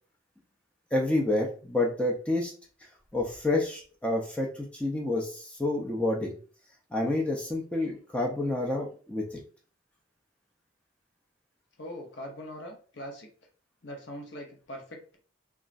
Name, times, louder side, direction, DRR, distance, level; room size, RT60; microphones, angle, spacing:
voice 1, 0.9-2.5 3.1-6.3 6.9-9.4, left 2 dB, 5° left, -1 dB, 0.4 m, -29 dB
voice 2, 11.8-13.3 13.8-15.2, equal, 65° left, 2 dB, 0.7 m, -41 dB
2.9 x 2.3 x 2.5 m, 0.40 s
head